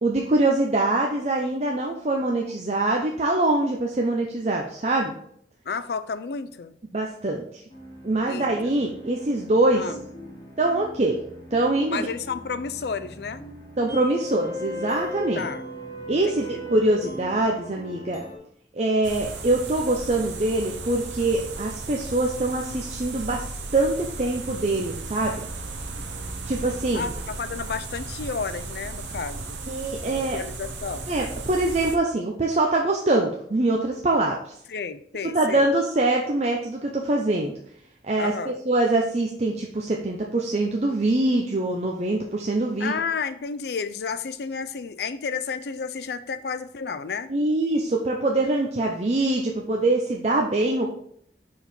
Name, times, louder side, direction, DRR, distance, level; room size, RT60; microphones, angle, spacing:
voice 1, 0.0-5.1 6.9-7.6 8.0-9.8 10.6-11.2 11.5-12.0 13.8-15.5 16.1-18.2 18.7-25.4 26.5-27.1 29.7-30.4 31.1-34.4 35.3-37.5 38.0-42.9 47.3-50.9, right 2 dB, 35° right, 0 dB, 0.6 m, -24 dB
voice 2, 5.7-6.7 8.3-8.5 9.7-10.0 11.9-13.4 15.4-15.6 16.1-16.6 26.9-29.6 30.1-31.1 34.7-35.7 38.2-38.6 42.8-47.3, left 5 dB, 65° left, 11 dB, 0.4 m, -31 dB
sound 1, 7.7-18.4, left 1 dB, 20° left, 1.1 m, -38 dB
sound 2, 19.0-32.0, right 3 dB, 90° right, 0.8 m, -35 dB
5.3 x 4.7 x 4.3 m, 0.66 s
head